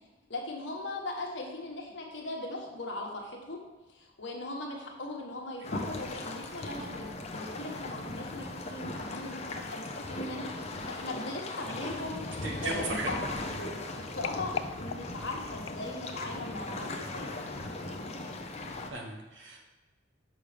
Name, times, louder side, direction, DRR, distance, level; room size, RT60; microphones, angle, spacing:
voice 1, 0.3-3.6 3.9-10.5 10.9-17.5, left 2 dB, 65° left, 0 dB, 1.4 m, -39 dB
sound 1, 5.6-18.9, left 2 dB, 35° left, 0.7 m, -38 dB
sound 2, 11.4-16.4 17.0-17.2 17.5-17.6, left 8 dB, 90° left, 0.3 m, -44 dB
voice 2, 12.4-13.1 18.9-19.7, right 2 dB, 75° right, 0 dB, 1.5 m, -36 dB
6.3 x 5.6 x 5.1 m, 1.2 s
head